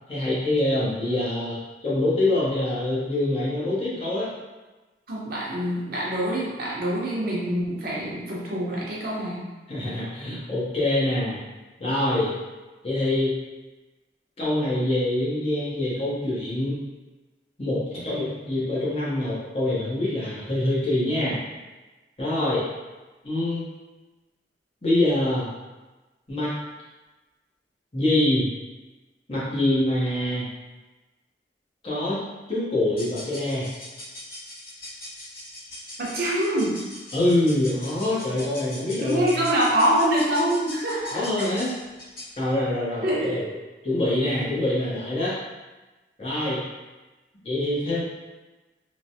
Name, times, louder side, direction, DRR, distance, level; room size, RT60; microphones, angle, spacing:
voice 1, 0.1-4.3 9.7-11.4 11.8-12.4 12.8-13.4 14.4-16.8 17.6-21.4 22.2-22.7 23.2-23.7 24.8-25.5 26.3-26.5 27.9-28.5 29.3-30.5 31.8-32.2 32.5-33.7 37.1-39.4 41.1-41.7 42.4-43.4 43.8-45.3 46.2-46.6 47.4-48.0, left 1 dB, 35° left, -8 dB, 0.9 m, -25 dB
voice 2, 5.1-9.5 36.0-36.8 39.0-41.4 43.0-43.4, right 1 dB, 55° right, -6 dB, 0.8 m, -25 dB
sound 1, 32.9-42.4, left 1 dB, 60° left, 1.0 m, -41 dB
3.1 x 2.1 x 2.7 m, 1.2 s
head